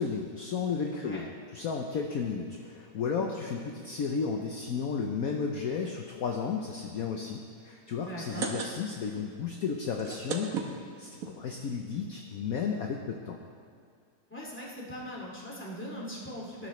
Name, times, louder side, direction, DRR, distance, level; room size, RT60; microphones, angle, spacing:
voice 1, 0.0-13.4, left 5 dB, 60° left, 2 dB, 1.1 m, -33 dB
voice 2, 3.1-3.4 8.0-8.5 14.3-16.7, equal, 5° left, -5 dB, 2.3 m, -40 dB
sound 1, 8.0-9.1 9.4-9.5 9.8-11.3 12.0-12.1 12.4-12.5 12.6-12.9, right 5 dB, 55° right, 1.3 m, -36 dB
19.0 x 10.5 x 3.2 m, 2.1 s
omnidirectional pair, 2.0 m